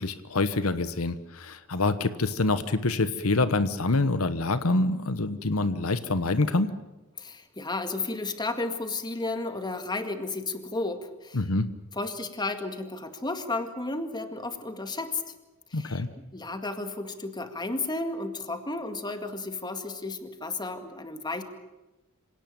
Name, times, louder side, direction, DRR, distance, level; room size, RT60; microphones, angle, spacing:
voice 1, 0.0-6.7 11.3-11.7 15.7-16.1, left 2 dB, 80° left, 12 dB, 1.2 m, -26 dB
voice 2, 7.2-11.4 12.0-15.2 15.7-16.0 16.3-21.4, left 2 dB, 20° left, 7 dB, 2.0 m, -33 dB
26.5 x 18.0 x 9.0 m, 1.0 s
head